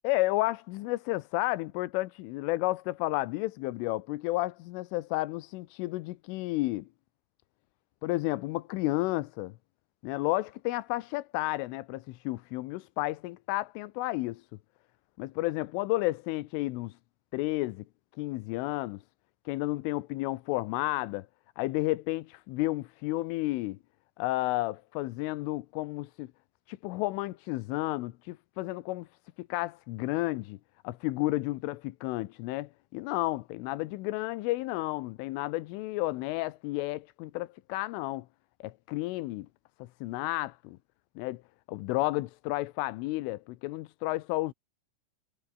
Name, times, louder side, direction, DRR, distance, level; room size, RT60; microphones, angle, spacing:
voice 1, 0.0-6.9 8.0-9.5 10.0-14.4 15.2-17.0 17.3-17.8 18.2-19.0 19.5-21.3 21.6-23.8 24.2-26.3 26.7-29.1 29.4-30.6 30.8-38.3 38.6-39.5 40.0-40.8 41.2-41.4 41.7-44.5, left 19 dB, 80° left, 3.4 m, -32 dB
omnidirectional pair, 5.7 m